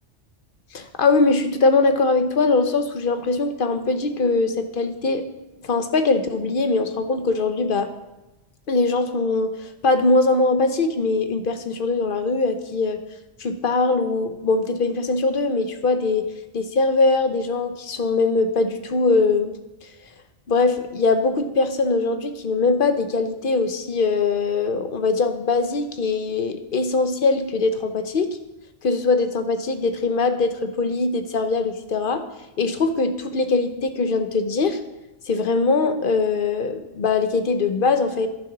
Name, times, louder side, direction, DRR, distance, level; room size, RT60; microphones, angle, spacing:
voice 1, 0.7-5.2 5.6-7.9 8.7-9.5 9.8-13.0 13.4-16.3 16.5-19.5 20.5-28.3 28.8-32.2 32.6-34.8 35.3-38.3, left 3 dB, 50° left, 8 dB, 1.0 m, -21 dB
11.0 x 7.0 x 6.0 m, 0.99 s
omnidirectional pair, 1.2 m